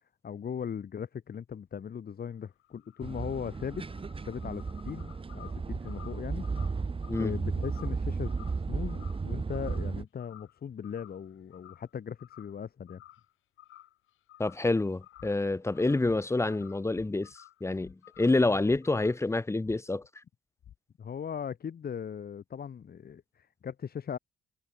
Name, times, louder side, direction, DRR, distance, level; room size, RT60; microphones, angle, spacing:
voice 1, 0.2-3.8 4.2-6.4 7.2-8.4 8.7-13.0 21.0-24.2, left 7 dB, 50° left, 3.3 m, -38 dB
sound 1, 2.3-9.9 10.2-10.6 10.8-11.9 12.2-12.5 12.9-13.3 13.6-14.7 15.0-16.9 17.2-17.6 18.0-18.4 18.8-19.3, left 14 dB, 80° left, 3.3 m, -54 dB
sound 2, 3.0-10.1, right 4 dB, 25° right, 1.9 m, -34 dB
voice 2, 14.4-20.0, left 2 dB, 15° left, 1.1 m, -28 dB
sound 3, 15.1-15.6 16.0-16.4 16.9-17.4 17.8-18.2 18.7-19.3 19.6-20.1 20.6-20.8, left 10 dB, 65° left, 6.9 m, -54 dB
cardioid pair, 90°, 20 cm